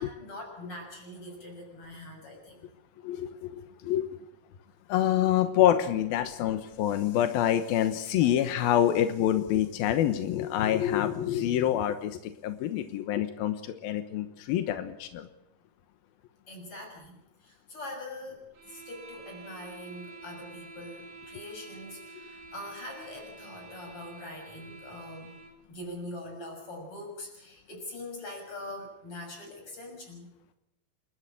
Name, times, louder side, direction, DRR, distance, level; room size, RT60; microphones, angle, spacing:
voice 1, 0.0-2.7 16.5-25.4 25.7-30.3, left 1 dB, 40° left, 2 dB, 7.4 m, -43 dB
voice 2, 3.0-4.1 4.9-15.3, left 11 dB, 90° left, 9 dB, 3.0 m, -26 dB
sound 1, 18.5-25.6, right 3 dB, 55° right, 5.3 m, -48 dB
28.0 x 13.0 x 8.7 m, 0.86 s
omnidirectional pair, 4.1 m